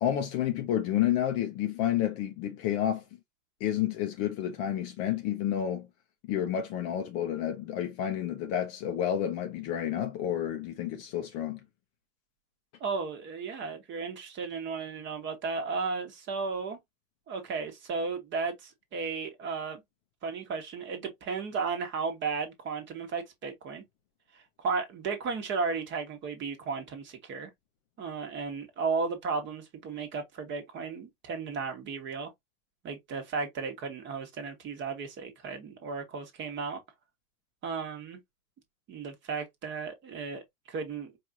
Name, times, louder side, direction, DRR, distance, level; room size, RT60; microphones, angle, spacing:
voice 1, 0.0-3.0 3.6-5.9 6.3-11.6, left 10 dB, 35° left, 0.6 m, -30 dB
voice 2, 12.8-16.8 17.3-19.8 20.2-23.8 24.6-27.5 28.0-32.3 32.8-36.8 37.6-38.2 38.9-41.2, right 4 dB, 25° right, 1.1 m, -34 dB
4.6 x 2.5 x 2.7 m
hypercardioid pair, 130°, 43 cm